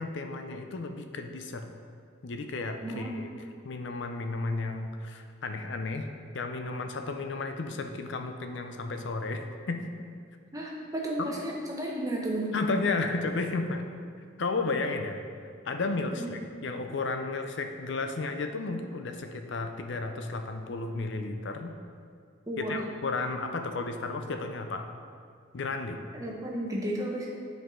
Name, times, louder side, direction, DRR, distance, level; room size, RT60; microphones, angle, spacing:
voice 1, 0.0-1.7 2.2-3.3 3.6-6.1 6.3-9.9 11.2-11.3 12.5-13.8 14.4-21.7 22.6-24.8 25.5-26.0, left 3 dB, 55° left, 6 dB, 0.5 m, -33 dB
voice 2, 2.8-3.2 10.5-12.7 16.2-16.3 22.5-22.7 26.1-27.3, right 1 dB, 15° right, -2 dB, 0.8 m, -33 dB
7.9 x 4.7 x 3.7 m, 2.3 s
head